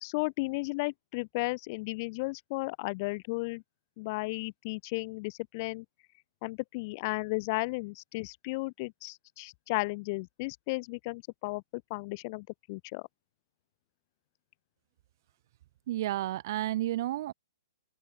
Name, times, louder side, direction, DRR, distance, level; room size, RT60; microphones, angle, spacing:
voice 1, 0.0-3.6 4.0-5.8 6.4-13.1, left 26 dB, 40° left, 0.8 m, -34 dB
voice 2, 15.9-17.3, right 14 dB, 50° right, 1.1 m, -31 dB
open air
hypercardioid pair, 135°, 2 cm